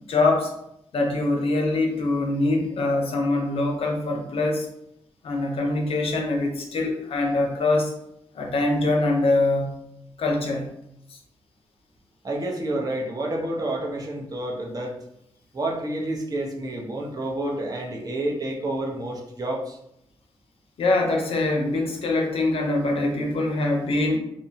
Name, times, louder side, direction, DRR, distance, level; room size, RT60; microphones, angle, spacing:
voice 1, 0.1-0.5 0.9-4.7 5.2-7.9 8.3-9.8 10.2-10.7 11.1-11.2 20.8-24.2, left 2 dB, 75° left, 2 dB, 0.5 m, -23 dB
voice 2, 12.2-15.0 15.5-19.8, right 1 dB, 40° right, 0 dB, 0.6 m, -29 dB
2.7 x 2.1 x 2.7 m, 0.77 s
cardioid pair, 80°, 10 cm